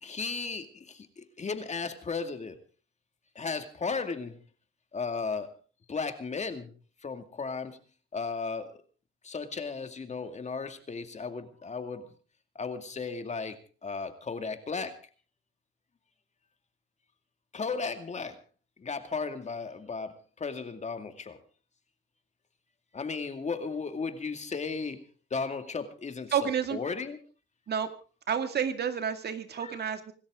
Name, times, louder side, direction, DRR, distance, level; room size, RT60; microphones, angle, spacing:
voice 1, 0.0-2.6 3.4-4.4 4.9-5.5 5.9-6.7 7.0-7.8 8.1-8.7 9.2-12.1 12.6-15.0 17.5-18.4 18.8-21.4 22.9-25.0 25.3-26.3 26.7-27.2 29.6-29.8, left 4 dB, 35° left, 2.3 m, -35 dB
voice 2, 26.3-26.8 27.7-27.9 28.3-30.1, right 7 dB, 55° right, 2.2 m, -30 dB
25.5 x 13.5 x 3.8 m
cardioid pair, 90°, 20 cm